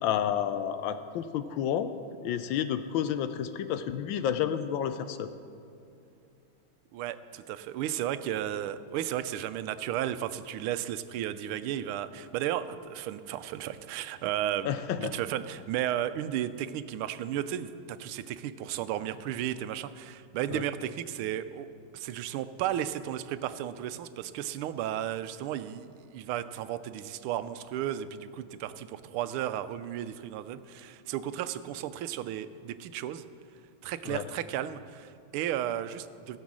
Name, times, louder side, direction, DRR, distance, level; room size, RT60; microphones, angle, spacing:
voice 1, 0.0-1.9 2.2-5.3 14.6-15.1 20.5-20.6 34.1-34.3, left 9 dB, 75° left, 11 dB, 1.2 m, -30 dB
voice 2, 6.9-14.7 15.0-21.7 21.9-33.2 33.8-36.4, right 11 dB, 90° right, 13 dB, 1.5 m, -34 dB
15.5 x 7.3 x 6.1 m, 2.6 s
omnidirectional pair, 2.3 m